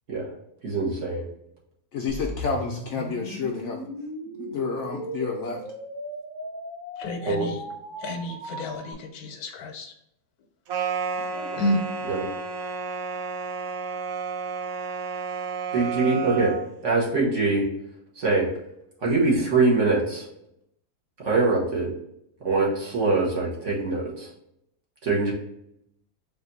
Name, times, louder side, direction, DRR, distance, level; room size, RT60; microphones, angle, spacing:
voice 1, 0.6-1.2 7.2-7.5 11.3-11.6 12.1-12.2 15.7-16.5 16.8-17.6 18.2-18.5 19.0-20.3 21.2-21.9 22.4-24.3 25.0-25.3, right 3 dB, 55° right, -3 dB, 1.5 m, -23 dB
voice 2, 1.9-3.9 4.3-5.6, left 5 dB, 65° left, 1 dB, 0.8 m, -30 dB
sound 1, 2.1-8.9, right 1 dB, 15° right, 0.9 m, -37 dB
voice 3, 7.0-7.6 8.0-9.9 11.6-11.8, left 1 dB, 80° left, 4 dB, 1.2 m, -30 dB
sound 2, 10.7-16.7, right 5 dB, 70° right, 1.0 m, -31 dB
4.2 x 2.6 x 3.9 m, 0.78 s
omnidirectional pair, 1.6 m